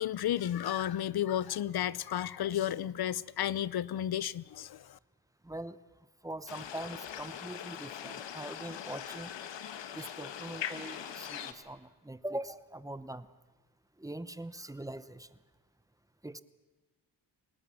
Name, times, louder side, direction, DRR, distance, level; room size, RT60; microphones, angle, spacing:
voice 1, 0.0-5.0, left 11 dB, 60° left, 0.7 m, -32 dB
voice 2, 5.4-5.8 6.2-9.3 9.9-13.3 14.0-15.4 16.2-16.4, right 1 dB, 10° right, 0.8 m, -42 dB
sound 1, 6.5-11.5, left 9 dB, 85° left, 1.5 m, -41 dB
25.5 x 18.5 x 7.1 m
cardioid pair, 110°, 42 cm